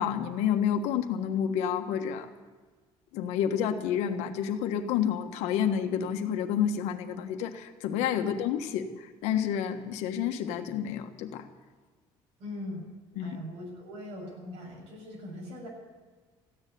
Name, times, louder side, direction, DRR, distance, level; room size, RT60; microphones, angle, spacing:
voice 1, 0.0-2.3 3.1-11.4 13.2-13.4, left 8 dB, 85° left, 6 dB, 1.4 m, -29 dB
voice 2, 12.4-12.9 13.2-15.7, left 1 dB, 75° right, 0 dB, 6.9 m, -41 dB
15.0 x 10.0 x 9.4 m, 1.4 s
cardioid pair, 160°, 11 cm